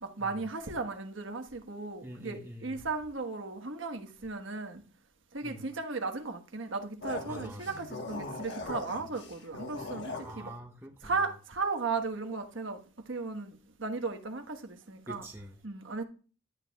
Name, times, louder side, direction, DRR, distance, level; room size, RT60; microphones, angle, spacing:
voice 1, 0.0-4.8 5.3-10.5 11.0-15.3 15.6-16.0, right 4 dB, 80° right, 1.3 m, -36 dB
voice 2, 2.0-2.8 5.4-5.7 7.3-7.8 10.2-11.2 15.1-15.6, right 1 dB, 15° right, 0.8 m, -45 dB
sound 1, 7.0-10.4, left 3 dB, 65° left, 1.4 m, -40 dB
11.5 x 8.6 x 2.3 m
head